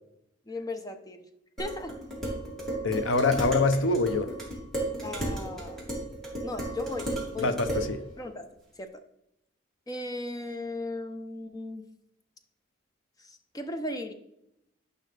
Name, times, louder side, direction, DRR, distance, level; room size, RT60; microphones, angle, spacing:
voice 1, 0.5-1.3 1.6-2.0 5.0-5.9 6.4-7.6 8.2-8.5 8.8-8.9 9.9-11.9 13.2-14.1, left 1 dB, 20° left, 0.7 m, -36 dB
Dishes pots and pans, 1.6-7.9, right 1 dB, ahead, 2.5 m, -34 dB
voice 2, 2.8-4.4 7.4-8.0, left 3 dB, 80° left, 0.7 m, -25 dB
10.5 x 5.5 x 3.3 m
head